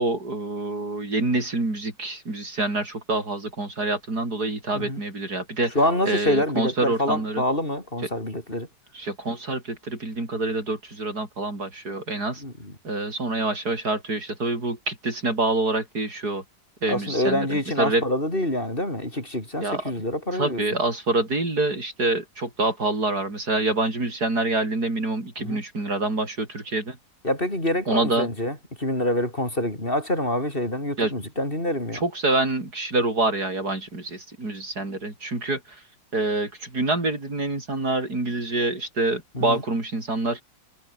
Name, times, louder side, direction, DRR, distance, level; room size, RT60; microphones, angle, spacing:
voice 1, 0.0-5.8 6.0-7.4 8.9-12.4 12.8-16.4 16.8-18.0 19.6-19.8 20.3-27.0 27.9-28.3 31.0-31.1 32.0-35.8 36.1-40.4, right 2 dB, 60° right, 6.2 m, -26 dB
voice 2, 5.7-8.7 12.4-12.7 16.9-20.6 25.4-25.6 27.2-32.0 39.3-39.6, left 1 dB, 30° left, 6.4 m, -26 dB
omnidirectional pair, 1.9 m